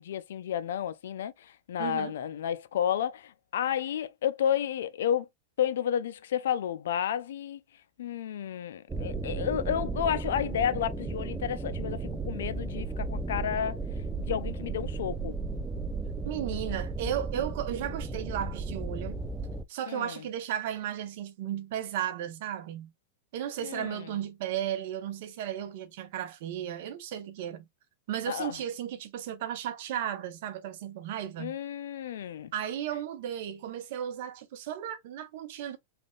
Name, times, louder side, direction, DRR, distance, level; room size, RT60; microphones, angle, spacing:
voice 1, 0.0-5.3 5.6-7.6 8.0-13.8 14.2-15.4 19.9-20.1 23.6-24.1 28.3-28.6 31.4-32.5, left 9 dB, 80° left, 0.4 m, -31 dB
voice 2, 1.8-2.1 16.2-19.2 19.7-22.9 23.3-27.6 28.1-31.6 32.5-35.8, right 10 dB, 60° right, 0.8 m, -35 dB
sound 1, 8.9-19.6, right 3 dB, 15° right, 0.4 m, -34 dB
3.3 x 2.5 x 2.3 m
hypercardioid pair, 130°, 0 cm